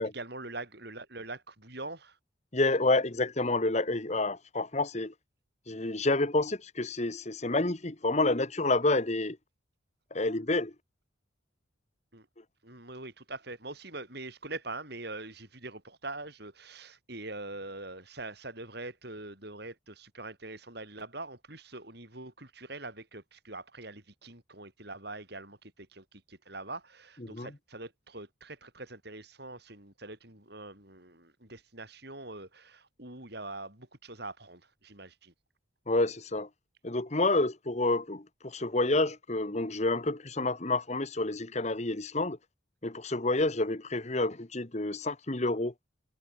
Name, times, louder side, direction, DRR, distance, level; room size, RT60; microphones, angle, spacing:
voice 1, 0.0-2.2 12.1-12.3 12.6-35.3, right 2 dB, 55° right, 6.9 m, -43 dB
voice 2, 2.5-5.1 5.7-9.4 10.1-10.7 27.3-27.5 35.9-36.5 36.8-42.4 42.8-45.7, left 2 dB, 35° left, 1.2 m, -29 dB
head